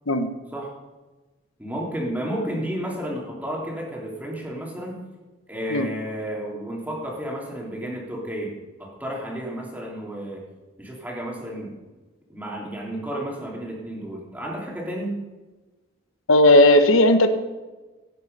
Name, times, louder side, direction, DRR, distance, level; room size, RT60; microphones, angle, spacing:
voice 1, 1.6-5.0 5.5-8.5 8.8-10.4 10.8-11.7 12.3-15.2, right 1 dB, 10° right, -2 dB, 3.1 m, -32 dB
voice 2, 16.3-17.3, left 1 dB, 85° left, 8 dB, 1.2 m, -15 dB
16.5 x 9.5 x 5.5 m, 1.2 s
head